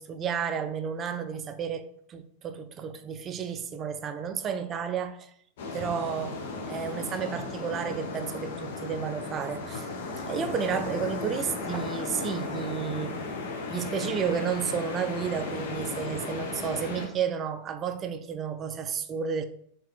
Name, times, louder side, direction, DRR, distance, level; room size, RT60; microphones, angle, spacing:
voice 1, 0.0-5.3 5.7-6.4 6.7-9.9 10.2-13.2 13.7-19.4, right 7 dB, 25° right, 0.3 m, -32 dB
sound 1, 5.6-17.1, left 3 dB, 55° left, 0.6 m, -35 dB
3.8 x 2.5 x 2.9 m
figure-of-eight pair, 90°, 0 cm